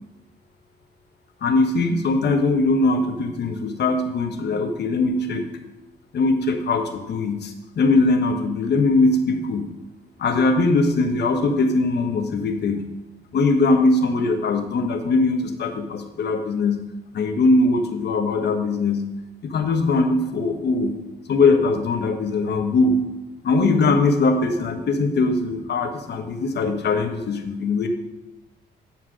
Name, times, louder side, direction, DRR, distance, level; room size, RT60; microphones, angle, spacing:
voice 1, 1.4-5.4 6.1-9.7 10.2-12.8 13.3-16.8 17.1-19.0 19.4-20.9 21.3-23.0 23.4-27.9, left 3 dB, 60° left, 6 dB, 1.3 m, -21 dB
11.0 x 4.6 x 6.2 m, 1.0 s
cardioid pair, 90°, 20 cm